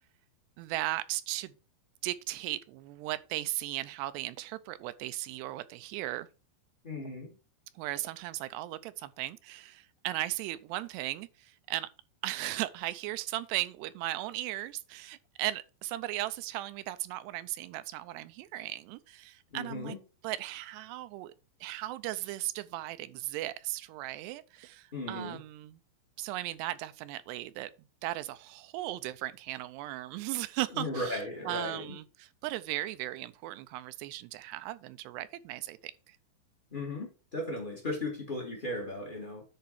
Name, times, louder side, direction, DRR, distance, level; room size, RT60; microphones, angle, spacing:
voice 1, 0.6-1.6 2.0-6.3 7.8-11.9 12.2-20.0 20.2-21.3 21.6-25.8 26.2-27.7 28.0-36.2, right 16 dB, 80° right, 2.6 m, -37 dB
voice 2, 6.8-7.4 19.5-20.0 24.9-25.4 30.7-31.9 36.7-39.4, left 2 dB, 70° left, 0.4 m, -36 dB
10.5 x 4.2 x 5.8 m
omnidirectional pair, 5.0 m